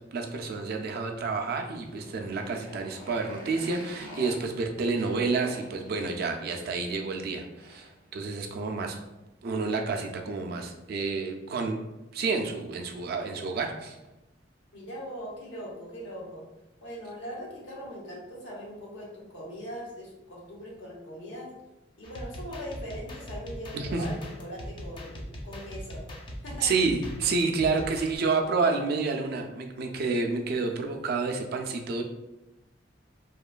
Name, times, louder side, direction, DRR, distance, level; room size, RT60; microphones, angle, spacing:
voice 1, 0.1-9.0 9.4-11.8 12.1-14.0 23.7-24.1 26.6-32.0, right 4 dB, 55° right, 3 dB, 0.3 m, -29 dB
Motorcycle, 1.5-8.1, left 1 dB, 45° left, 0.8 m, -47 dB
voice 2, 14.7-16.4 16.8-21.5 22.0-26.0 26.4-26.7, equal, 90° left, -4 dB, 0.9 m, -40 dB
sound 1, 22.0-28.2, equal, 30° left, 0.4 m, -41 dB
2.9 x 2.2 x 2.3 m, 0.99 s
head